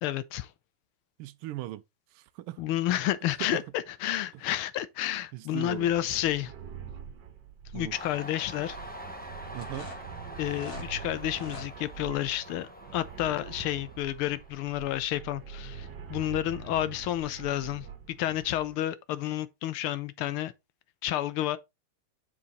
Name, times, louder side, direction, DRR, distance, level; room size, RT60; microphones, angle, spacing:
voice 1, 0.0-0.5 2.6-6.5 7.7-8.8 10.4-17.9 18.2-20.5 21.0-21.6, left 13 dB, 80° left, 1.5 m, -30 dB
voice 2, 1.2-1.8 2.1-2.6 3.5-3.6 5.3-5.9 7.7-8.0 9.5-9.9, right 15 dB, 85° right, 1.5 m, -38 dB
sound 1, 5.7-18.8, right 8 dB, 55° right, 1.7 m, -44 dB
Train, 7.9-15.3 15.7-16.5, equal, 15° left, 0.3 m, -45 dB
sound 2, 9.6-10.9 11.3-11.7, left 3 dB, 40° left, 3.4 m, -43 dB
7.2 x 4.7 x 3.9 m
omnidirectional pair, 2.4 m